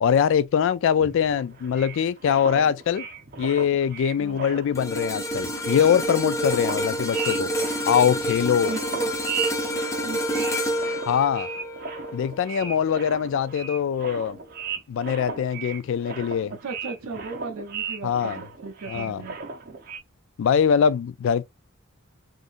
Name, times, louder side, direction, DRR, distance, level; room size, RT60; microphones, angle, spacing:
voice 1, 0.0-3.1 3.4-7.5 7.9-8.7 11.1-11.5 12.1-14.4 14.9-16.5 18.0-18.4 18.9-19.2 20.4-21.4, left 8 dB, 65° left, 0.3 m, -23 dB
sound 1, 1.0-4.9 5.2-20.0, right 6 dB, 45° right, 0.9 m, -37 dB
sound 2, 4.7-13.1 13.5-13.7, equal, 15° left, 0.6 m, -28 dB
voice 2, 8.7-9.1 10.0-10.5 16.6-19.4, right 4 dB, 75° right, 0.5 m, -36 dB
3.6 x 2.5 x 2.5 m
head